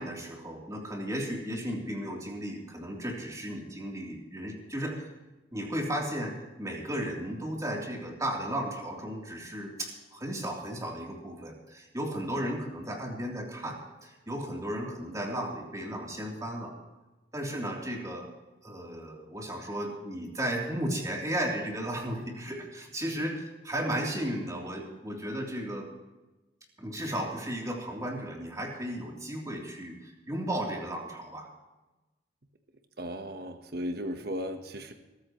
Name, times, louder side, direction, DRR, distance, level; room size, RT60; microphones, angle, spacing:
voice 1, 0.0-5.1 5.5-16.7 17.3-18.3 18.6-25.9 26.8-31.5, right 1 dB, 20° right, -1 dB, 3.2 m, -35 dB
voice 2, 33.0-34.9, equal, 60° right, 6 dB, 1.2 m, -36 dB
23.0 x 13.5 x 3.1 m, 1.1 s
head